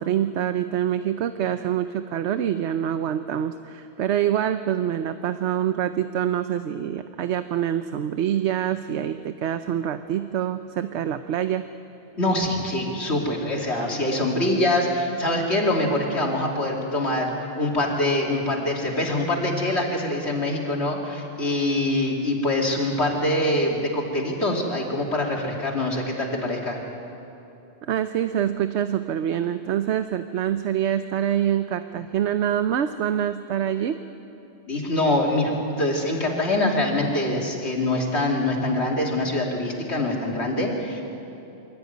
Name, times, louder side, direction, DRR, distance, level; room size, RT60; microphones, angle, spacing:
voice 1, 0.0-11.6 13.7-13.9 27.9-34.0, right 10 dB, 80° right, 10 dB, 1.0 m, -25 dB
voice 2, 12.2-26.8 34.7-35.5 35.8-41.0, left 1 dB, 75° left, -1 dB, 3.2 m, -24 dB
25.0 x 14.0 x 9.4 m, 2.9 s
omnidirectional pair, 1.1 m